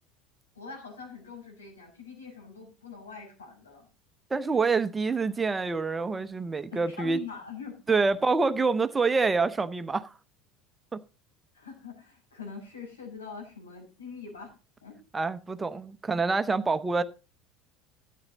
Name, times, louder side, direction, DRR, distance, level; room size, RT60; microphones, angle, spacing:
voice 1, 0.5-3.9 6.7-7.8 11.5-14.5 14.8-15.0, left 5 dB, 85° left, 6.4 m, -43 dB
voice 2, 4.3-7.2 7.9-10.1 10.9-11.0 15.1-17.0, right 4 dB, 20° right, 0.8 m, -26 dB
13.0 x 8.5 x 4.0 m
hypercardioid pair, 75°, 0 cm